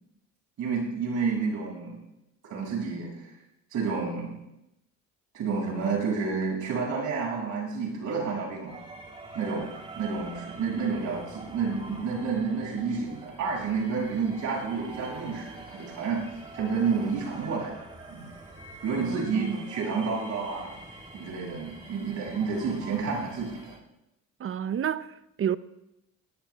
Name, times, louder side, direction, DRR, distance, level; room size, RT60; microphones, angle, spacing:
voice 1, 0.6-2.0 2.5-3.3 3.7-4.3 5.3-8.8 9.3-9.7 9.9-16.2 16.5-17.8 18.1-18.3 18.8-20.7 21.1-23.7, right 5 dB, 75° right, 6.1 m, -30 dB
sound 1, 8.7-23.8, right 2 dB, 20° right, 2.1 m, -45 dB
voice 2, 19.0-19.7 24.4-25.6, right 9 dB, 45° right, 0.6 m, -31 dB
19.5 x 19.0 x 2.3 m
cardioid pair, 90°, 30 cm